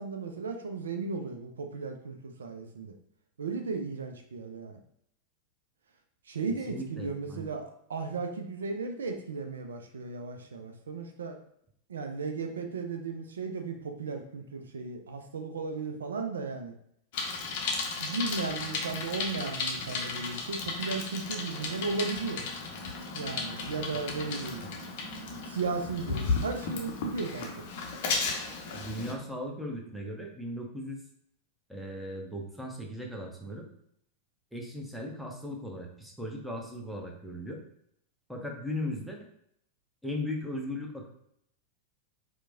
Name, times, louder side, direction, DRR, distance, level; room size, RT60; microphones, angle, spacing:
voice 1, 0.0-2.9 3.4-4.8 6.3-11.4 11.9-16.7 18.0-22.4 23.1-24.6 25.4-27.5, right 4 dB, 70° right, 5 dB, 0.3 m, -35 dB
voice 2, 6.7-7.5 24.6-24.7 28.7-31.0 31.7-33.6 34.5-37.6 38.3-39.2 40.0-41.1, left 1 dB, ahead, 0 dB, 0.7 m, -37 dB
Bicycle, 17.1-29.1, left 4 dB, 50° left, 0.6 m, -34 dB
4.4 x 2.1 x 2.5 m, 0.69 s
figure-of-eight pair, 90°, 0 cm